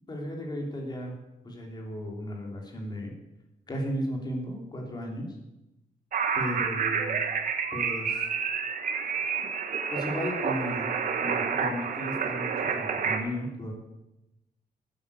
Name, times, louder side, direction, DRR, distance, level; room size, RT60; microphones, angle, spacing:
voice 1, 0.1-1.1 1.4-3.1 3.7-5.3 6.3-7.2 7.7-8.3 9.1-9.4 9.9-10.9 11.2-13.7, equal, 30° left, 1 dB, 3.2 m, -35 dB
sound 1, 6.1-13.2, right 6 dB, 65° right, 1.6 m, -29 dB
12.0 x 9.7 x 8.5 m, 0.94 s
wide cardioid pair, 175°, 15 cm